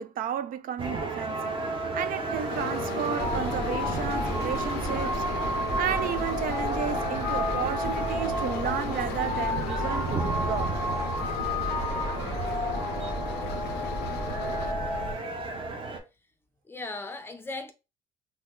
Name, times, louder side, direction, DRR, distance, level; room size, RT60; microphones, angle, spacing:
voice 1, 0.0-1.6 1.9-5.2 5.8-10.7, right 9 dB, 55° right, 0.4 m, -33 dB
sound 1, 0.8-16.0, right 3 dB, 30° right, 1.0 m, -34 dB
sound 2, 2.5-14.7, left 9 dB, 75° left, 0.5 m, -37 dB
sound 3, 3.2-15.1, left 1 dB, 5° right, 1.3 m, -32 dB
voice 2, 16.7-17.7, left 3 dB, 15° left, 0.6 m, -38 dB
2.9 x 2.2 x 3.7 m
cardioid pair, 110°, 17 cm